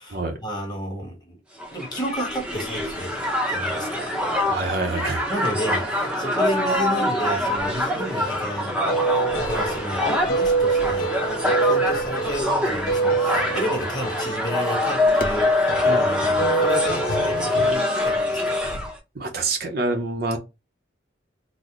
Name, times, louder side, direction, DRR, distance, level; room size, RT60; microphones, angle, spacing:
voice 1, 0.0-1.4 1.7-4.1 5.3-18.7, equal, 20° left, 1.3 m, -32 dB
Crowd, 1.6-19.0, left 1 dB, 5° right, 0.7 m, -24 dB
voice 2, 4.5-5.3 19.1-20.4, right 3 dB, 50° right, 0.7 m, -26 dB
sound 1, 4.5-8.6, right 3 dB, 75° right, 1.3 m, -44 dB
sound 2, 8.2-17.7, right 3 dB, 50° left, 0.6 m, -26 dB
4.0 x 2.2 x 3.0 m
head